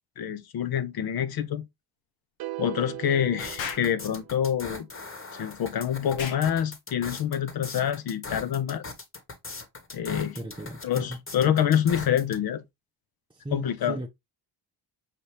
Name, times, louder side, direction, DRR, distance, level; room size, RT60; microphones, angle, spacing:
voice 1, 0.2-1.6 2.6-4.9 5.3-8.9 9.9-10.4 10.8-12.6 13.5-14.0, left 9 dB, 50° left, 0.8 m, -26 dB
sound 1, 2.4-4.7, right 16 dB, 55° right, 0.6 m, -39 dB
sound 2, 3.4-12.4, left 3 dB, 25° left, 1.4 m, -40 dB
Explosion, 3.6-3.9 6.2-6.5, left 7 dB, 80° left, 1.1 m, -34 dB
voice 2, 10.3-11.2 13.3-14.1, right 1 dB, 10° right, 0.6 m, -36 dB
5.8 x 2.7 x 3.2 m
supercardioid pair, 75°, 46 cm